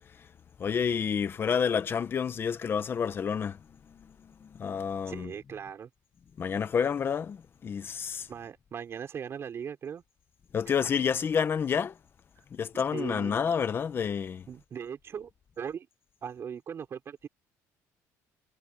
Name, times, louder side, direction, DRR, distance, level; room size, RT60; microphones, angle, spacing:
voice 1, 0.6-3.6 3.9-5.3 6.4-8.3 10.5-12.0 12.5-14.5, left 7 dB, 35° left, 1.2 m, -29 dB
voice 2, 5.1-5.9 8.3-10.0 10.7-10.8 12.9-13.4 14.5-15.3 15.6-15.9 16.2-17.3, right 7 dB, 40° right, 5.0 m, -39 dB
cardioid pair, 125°, 7 cm